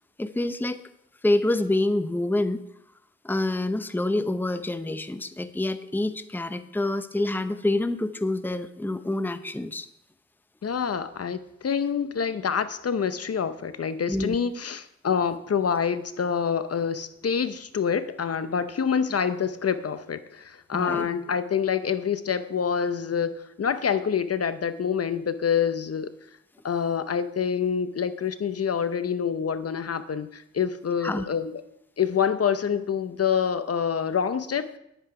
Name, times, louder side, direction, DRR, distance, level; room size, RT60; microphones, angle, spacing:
voice 1, 0.2-0.8 1.2-2.6 3.2-9.9 14.1-14.4 20.7-21.1 31.0-31.3, left 2 dB, 5° left, 11 dB, 0.7 m, -27 dB
voice 2, 10.6-26.1 26.6-31.6 32.0-34.8, left 7 dB, 55° left, 12 dB, 0.7 m, -26 dB
9.9 x 8.8 x 4.8 m, 0.79 s
cardioid pair, 65°, 29 cm